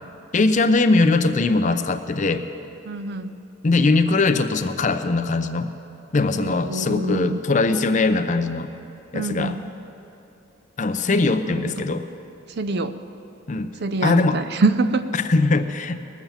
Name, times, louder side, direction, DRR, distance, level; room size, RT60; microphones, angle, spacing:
voice 1, 0.3-2.4 3.6-5.7 6.1-8.7 9.1-9.6 10.8-12.1 13.5-13.7 14.0-14.4 15.3-16.0, left 3 dB, 35° left, 9 dB, 0.5 m, -20 dB
voice 2, 2.9-3.3 6.3-7.4 9.1-9.6 11.7-11.9 12.6-13.0 13.8-15.1, right 3 dB, 55° right, 11 dB, 0.5 m, -25 dB
19.5 x 7.3 x 7.1 m, 2.8 s
head